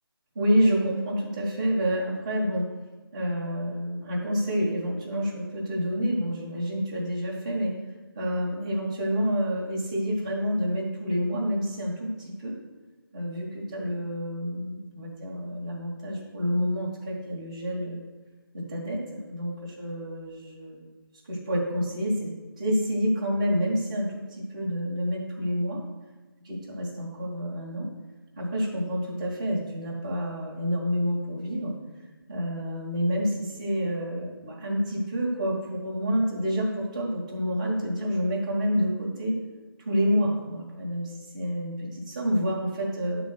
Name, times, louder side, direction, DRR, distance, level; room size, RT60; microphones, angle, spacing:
voice 1, 0.3-2.7 3.1-7.8 8.1-12.5 13.1-18.0 18.5-20.8 21.3-22.3 22.6-25.8 26.4-27.9 28.4-31.7 32.3-39.4 39.8-43.3, equal, 15° right, -5 dB, 1.2 m, -28 dB
8.6 x 3.9 x 6.3 m, 1.2 s
figure-of-eight pair, 175°, 12 cm